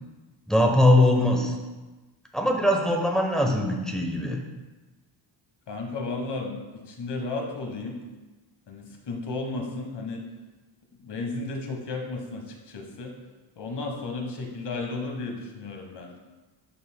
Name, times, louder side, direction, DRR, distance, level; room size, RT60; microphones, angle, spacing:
voice 1, 0.5-1.5 2.3-4.4, left 1 dB, ahead, 0 dB, 0.9 m, -21 dB
voice 2, 5.7-8.0 8.7-10.3 11.0-13.1 13.6-16.1, left 3 dB, 55° left, 2 dB, 1.2 m, -33 dB
11.5 x 5.5 x 2.2 m, 1.2 s
wide cardioid pair, 140°, 47 cm